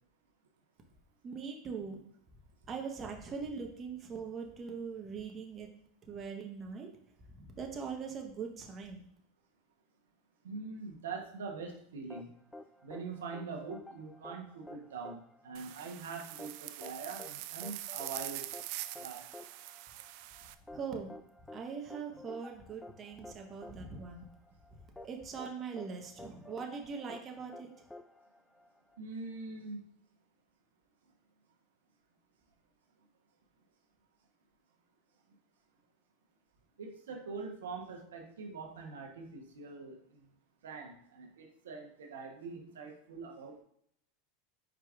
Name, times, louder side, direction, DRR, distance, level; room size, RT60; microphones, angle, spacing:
voice 1, 1.2-2.0 2.7-5.7 6.1-7.0 7.3-9.1 20.7-21.1 21.5-24.3 25.0-27.7, right 5 dB, 30° right, 3 dB, 0.9 m, -41 dB
voice 2, 10.4-12.3 12.8-18.5 19.0-19.3 29.0-29.8 36.8-40.0 40.6-43.6, right 4 dB, 80° right, 1 dB, 0.9 m, -43 dB
sound 1, 12.1-29.0, left 2 dB, 10° left, 0.4 m, -52 dB
sound 2, 15.5-20.5, right 15 dB, 60° right, 0.3 m, -44 dB
4.8 x 4.7 x 2.4 m, 0.67 s
hypercardioid pair, 100°, 0 cm